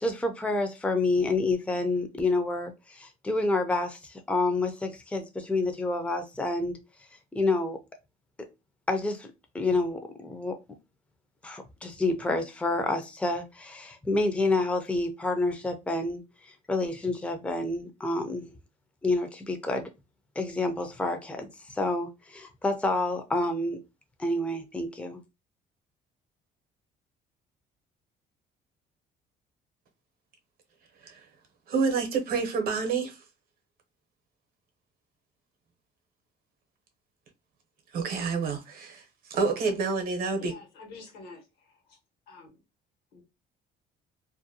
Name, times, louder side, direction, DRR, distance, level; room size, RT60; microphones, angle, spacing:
voice 1, 0.0-6.8 7.3-7.8 8.9-10.6 11.4-16.2 16.7-18.4 19.0-19.9 20.4-23.8 24.2-25.2, left 2 dB, 5° left, 0.4 m, -28 dB
voice 2, 31.7-33.2 37.9-40.5, right 4 dB, 60° right, 0.8 m, -28 dB
voice 3, 40.3-42.0 42.3-42.6 43.1-43.2, left 3 dB, 70° left, 1.2 m, -48 dB
2.5 x 2.1 x 2.6 m
cardioid pair, 110°, 17 cm